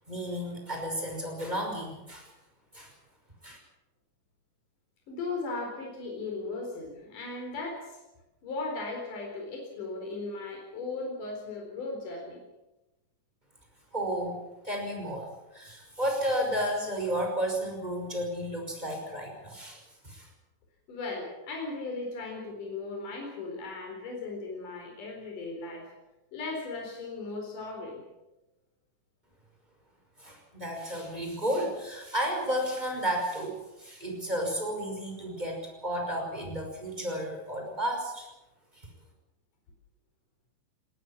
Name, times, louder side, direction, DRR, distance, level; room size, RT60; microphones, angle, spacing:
voice 1, 0.1-2.3 2.7-2.9 3.4-3.6 13.9-14.4 14.6-20.3 30.2-38.3 38.7-38.9, equal, 10° right, 1 dB, 5.8 m, -32 dB
voice 2, 5.1-8.0 8.4-12.4 20.9-25.9 26.3-28.0, left 3 dB, 65° left, 1 dB, 5.8 m, -37 dB
20.0 x 19.5 x 7.5 m, 0.99 s
omnidirectional pair, 4.0 m